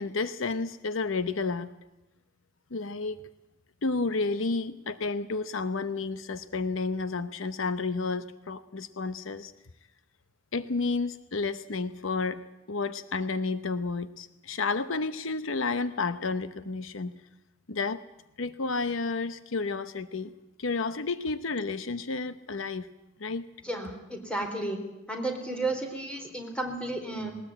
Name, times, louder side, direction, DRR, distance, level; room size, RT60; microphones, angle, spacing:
voice 1, 0.0-1.7 2.7-3.3 3.8-9.5 10.5-17.2 17.7-18.0 18.4-20.3 20.6-22.9 23.2-23.5, left 3 dB, 70° left, 12 dB, 0.9 m, -31 dB
voice 2, 23.6-24.8 25.1-27.4, right 2 dB, 5° left, 4 dB, 4.1 m, -33 dB
20.5 x 19.5 x 8.7 m, 0.96 s
head